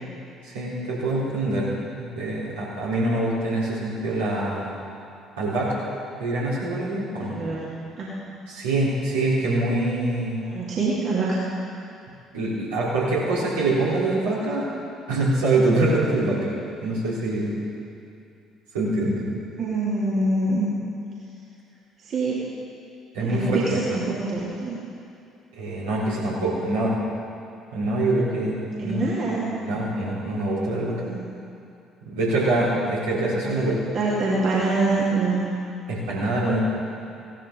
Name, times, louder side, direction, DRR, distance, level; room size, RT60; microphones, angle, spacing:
voice 1, 0.4-1.7 2.0-4.8 5.4-5.8 6.2-7.4 8.5-10.5 12.3-14.7 15.1-16.5 16.8-17.6 18.7-19.3 23.1-23.8 25.6-26.9 27.7-29.0 29.6-31.0 32.0-33.7 35.9-36.6, right 2 dB, 75° right, -8 dB, 3.8 m, -24 dB
voice 2, 7.3-7.6 8.0-8.1 10.4-11.4 19.6-20.7 22.0-22.4 23.2-24.8 28.8-29.5 30.9-31.2 33.4-33.6 33.9-35.4, right 3 dB, 50° right, -7 dB, 2.9 m, -25 dB
16.5 x 13.0 x 3.9 m, 2.6 s
figure-of-eight pair, 50°, 0 cm